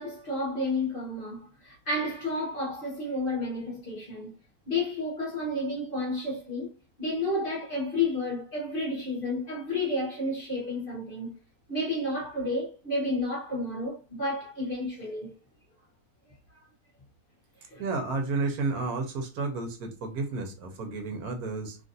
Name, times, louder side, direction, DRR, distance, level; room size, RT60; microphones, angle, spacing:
voice 1, 0.0-4.4 4.7-6.7 7.0-11.4 11.7-15.3 16.5-16.7 17.7-17.8, left 2 dB, 40° left, 1.1 m, -31 dB
voice 2, 17.8-21.8, right 3 dB, 75° right, 1.2 m, -31 dB
3.0 x 2.5 x 2.5 m
omnidirectional pair, 1.7 m